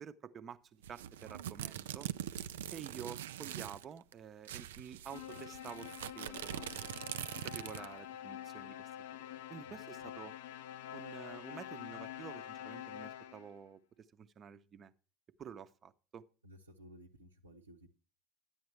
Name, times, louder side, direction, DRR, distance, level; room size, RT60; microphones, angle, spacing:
voice 1, 0.0-2.1 2.7-6.9 7.4-8.9 9.2-10.3 10.9-13.8 14.1-14.9 15.4-16.2, right 7 dB, 35° right, 12 dB, 0.8 m, -50 dB
sound 1, 0.8-3.8 4.1-4.2 4.4-8.0, right 11 dB, 70° right, 0.4 m, -43 dB
sound 2, 5.1-13.6, left 11 dB, 65° left, 0.5 m, -47 dB
voice 2, 9.6-10.1 16.4-17.9, equal, 90° right, -1 dB, 0.9 m, -57 dB
11.0 x 8.9 x 3.2 m, 0.35 s
figure-of-eight pair, 75°, 0 cm